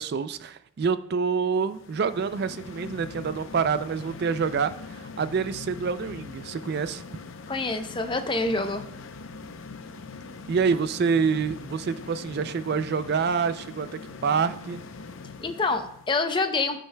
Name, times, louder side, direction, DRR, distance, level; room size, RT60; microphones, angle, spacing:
voice 1, 0.0-7.0 10.5-13.9 14.2-14.8, right 5 dB, 45° right, 13 dB, 0.3 m, -27 dB
sound 1, 1.6-16.2, left 4 dB, 60° left, 0.6 m, -42 dB
voice 2, 7.5-8.8 15.4-16.8, left 3 dB, 20° left, 7 dB, 0.6 m, -27 dB
14.0 x 6.4 x 2.2 m, 0.75 s
head